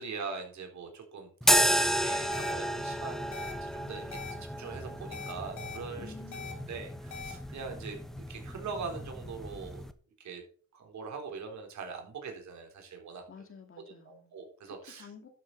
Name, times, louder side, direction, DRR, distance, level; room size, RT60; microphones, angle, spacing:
voice 1, 0.0-6.1 6.4-8.0 8.3-9.9 10.2-10.4 10.7-13.2 14.1-15.1, right 5 dB, 65° right, 3 dB, 3.9 m, -42 dB
sound 1, 1.4-9.9, equal, ahead, 1.1 m, -32 dB
sound 2, 2.3-2.5 3.3-3.5 4.1-4.3 5.1-5.8 6.3-6.5 7.1-7.3, left 6 dB, 70° left, 2.4 m, -41 dB
voice 2, 6.0-6.6 13.3-14.3 14.7-15.3, left 5 dB, 45° left, 6 dB, 2.7 m, -50 dB
12.0 x 7.8 x 4.1 m, 0.43 s
cardioid pair, 90°, 30 cm